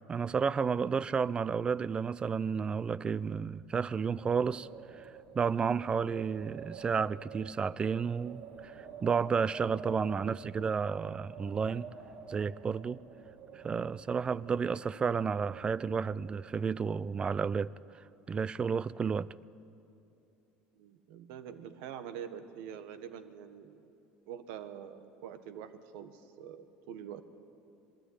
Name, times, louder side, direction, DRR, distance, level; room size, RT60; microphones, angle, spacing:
voice 1, 0.1-4.7 5.0-11.9 12.3-13.0 13.5-19.3, right 6 dB, 25° right, 0.5 m, -32 dB
Wind, 4.1-16.7, right 6 dB, 55° right, 2.6 m, -49 dB
voice 2, 20.7-23.9 24.3-27.3, right 9 dB, 75° right, 1.4 m, -45 dB
21.5 x 13.0 x 9.7 m
supercardioid pair, 100°, 4 cm